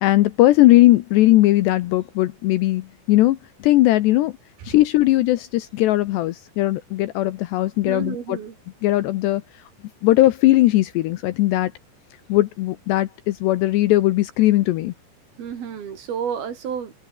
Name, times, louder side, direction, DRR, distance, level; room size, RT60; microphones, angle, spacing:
voice 1, 0.0-4.4 4.6-8.4 8.8-9.4 10.0-11.7 12.3-14.9, left 16 dB, 75° left, 2.7 m, -18 dB
voice 2, 7.9-8.5 15.4-16.9, right 7 dB, 55° right, 4.2 m, -30 dB
omnidirectional pair, 5.7 m